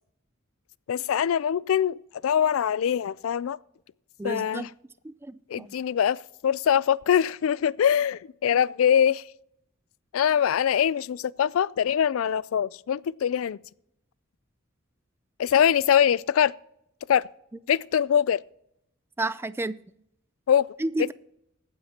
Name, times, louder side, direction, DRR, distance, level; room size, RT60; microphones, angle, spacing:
voice 1, 0.9-3.6 4.2-4.7 5.5-9.3 10.1-13.6 15.4-16.5 17.1-17.3 17.7-18.4 20.5-20.7 21.0-21.1, left 8 dB, 85° left, 0.3 m, -23 dB
voice 2, 4.2-4.7 5.0-5.7 19.2-19.8 20.8-21.1, right 2 dB, 10° right, 0.3 m, -31 dB
21.5 x 9.3 x 2.8 m
head